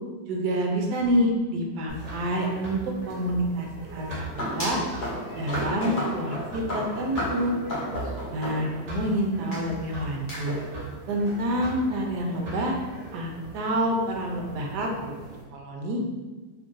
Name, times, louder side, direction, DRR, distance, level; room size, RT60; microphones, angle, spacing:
voice 1, 0.3-4.8 5.3-7.5 8.3-10.5 11.1-12.8 13.1-15.2 15.5-16.0, equal, 70° right, 1 dB, 1.1 m, -27 dB
sound 1, 1.9-15.4, right 2 dB, 50° right, 1.2 m, -40 dB
sound 2, 4.2-9.0 9.5-9.6 10.3-10.6, equal, 40° left, 0.7 m, -33 dB
3.2 x 2.6 x 3.7 m, 1.3 s
omnidirectional pair, 2.1 m